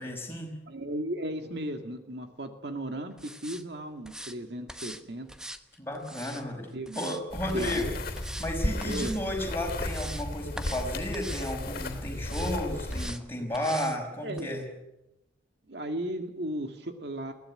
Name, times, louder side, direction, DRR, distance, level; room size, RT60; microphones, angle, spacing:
voice 1, 0.0-0.5 5.8-7.9 8.4-14.6, left 1 dB, 10° left, 1 dB, 5.6 m, -33 dB
voice 2, 0.7-5.3 6.7-7.1 7.5-7.9 8.8-9.2 14.2-14.6 15.7-17.3, right 1 dB, 60° right, 6 dB, 2.1 m, -35 dB
sound 1, 3.2-3.6 4.0-4.3 4.7-5.0 5.3-6.4 6.9-7.2 7.5-7.9 8.1-8.5 8.8-9.2 9.6-10.3 10.6-10.9 11.1-11.5 12.2-12.5 12.9-13.2 13.5-14.0 14.4-14.5, right 1 dB, 5° right, 1.0 m, -42 dB
sound 2, 7.3-13.1, left 1 dB, 50° left, 3.2 m, -34 dB
22.0 x 16.5 x 10.0 m, 0.93 s
head